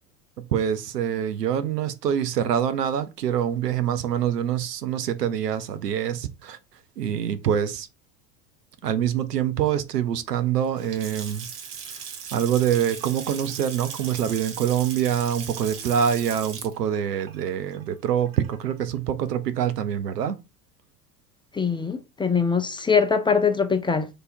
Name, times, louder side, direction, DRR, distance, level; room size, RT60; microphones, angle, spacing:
voice 1, 0.4-6.6 7.0-7.9 8.8-11.5 12.3-20.4, right 9 dB, 90° right, 0.7 m, -25 dB
Water tap faucet / Sink (filling or washing) / Splash splatter, 10.6-18.7, right 7 dB, 50° right, 1.3 m, -38 dB
voice 2, 21.5-24.1, left 5 dB, 10° left, 0.5 m, -22 dB
3.3 x 2.9 x 4.2 m
hypercardioid pair, 80°, 47 cm